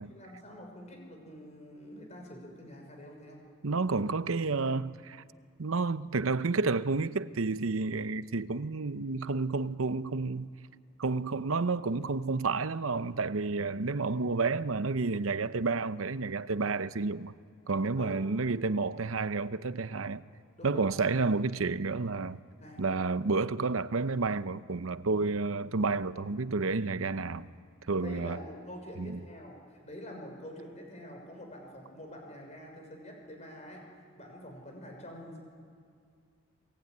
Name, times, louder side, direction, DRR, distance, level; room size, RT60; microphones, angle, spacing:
voice 1, 0.0-3.4 17.9-18.2 20.6-20.9 21.2-21.3 22.6-22.8 27.8-35.4, equal, 35° left, 6.3 m, -46 dB
voice 2, 3.6-5.2 5.6-10.5 11.0-17.3 17.7-20.2 20.6-22.4 22.8-27.5 27.9-28.4 29.0-29.2, right 3 dB, 90° right, 0.8 m, -30 dB
28.0 x 20.0 x 9.6 m
head